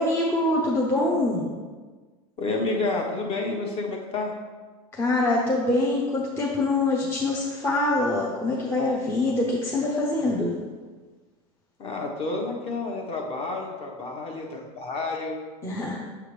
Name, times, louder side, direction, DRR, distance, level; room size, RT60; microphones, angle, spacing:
voice 1, 0.0-1.5 4.9-10.5 15.6-16.0, left 2 dB, 15° left, -4 dB, 0.7 m, -24 dB
voice 2, 2.4-4.4 11.8-15.4, left 3 dB, 30° left, 0 dB, 1.2 m, -30 dB
6.9 x 4.8 x 3.3 m, 1.4 s
supercardioid pair, 135°, 19 cm